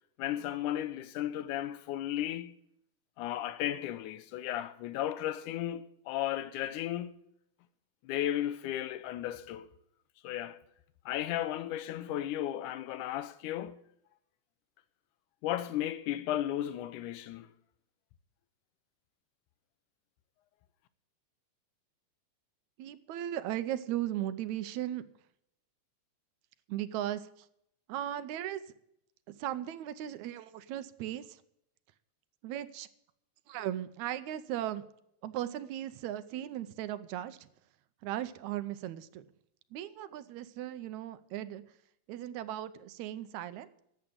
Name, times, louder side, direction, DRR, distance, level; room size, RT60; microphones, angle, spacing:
voice 1, 0.2-2.5 3.2-7.2 8.0-9.7 10.2-10.6 11.1-13.8 15.4-17.5, left 12 dB, 90° left, 2.2 m, -34 dB
voice 2, 22.8-25.1 26.7-27.5 27.9-28.6 29.3-31.4 32.4-32.9 33.5-34.8 35.2-37.5 38.0-39.3 39.7-41.6 42.1-43.7, right 12 dB, 80° right, 1.9 m, -37 dB
11.0 x 8.0 x 9.6 m
omnidirectional pair, 3.4 m